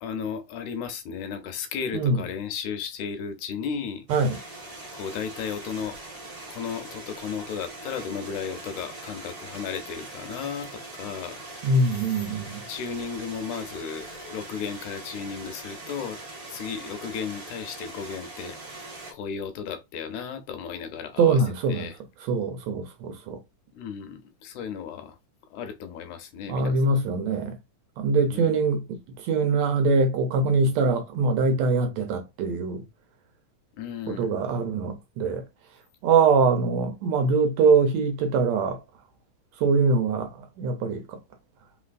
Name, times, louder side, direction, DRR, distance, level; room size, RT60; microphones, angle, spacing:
voice 1, 0.0-4.1 4.9-6.0 6.5-11.4 12.7-16.2 16.5-21.4 21.7-22.0 23.7-25.2 25.5-27.0 28.3-28.5 33.7-34.3, left 6 dB, 80° left, 2.1 m, -34 dB
sound 1, 4.1-19.1, right 2 dB, 40° right, 0.7 m, -42 dB
voice 2, 11.6-12.6 21.2-21.9 22.3-23.4 26.5-27.6 28.0-32.8 34.1-35.4 36.0-38.8 39.6-40.3 40.6-41.2, right 4 dB, 75° right, 1.8 m, -23 dB
4.3 x 3.9 x 2.4 m
omnidirectional pair, 3.5 m